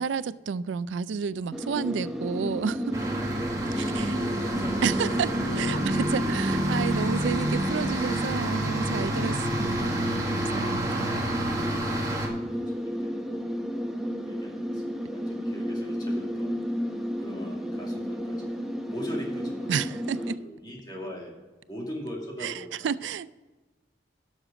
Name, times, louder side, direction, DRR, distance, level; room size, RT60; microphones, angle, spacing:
voice 1, 0.0-3.0 3.8-4.1 4.8-5.3 5.6-11.1 19.7-20.4 22.4-23.3, right 6 dB, 80° right, 0.4 m, -31 dB
sound 1, 1.3-10.6, equal, 40° right, 0.9 m, -32 dB
sound 2, 1.5-20.4, equal, 5° right, 0.7 m, -32 dB
sound 3, 2.9-12.3, right 1 dB, 20° right, 1.6 m, -31 dB
voice 2, 3.0-3.3 3.7-5.4 11.6-13.2 13.7-16.6 17.2-18.6 18.9-21.3 21.7-22.9, equal, 25° left, 2.3 m, -42 dB
12.5 x 6.5 x 4.9 m
head